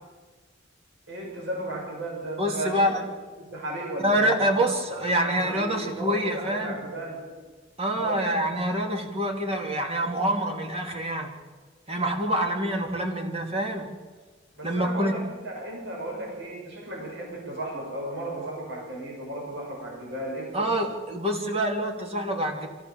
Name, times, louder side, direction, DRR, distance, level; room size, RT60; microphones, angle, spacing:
voice 1, 1.1-2.9 3.4-4.5 4.9-7.2 8.0-8.4 14.6-20.9, right 1 dB, 65° right, -2 dB, 7.2 m, -35 dB
voice 2, 2.4-3.0 4.0-6.8 7.8-11.3 11.9-13.9 14.6-15.2 20.5-22.7, right 1 dB, 30° right, 2 dB, 2.8 m, -26 dB
25.0 x 15.5 x 7.2 m, 1.4 s
head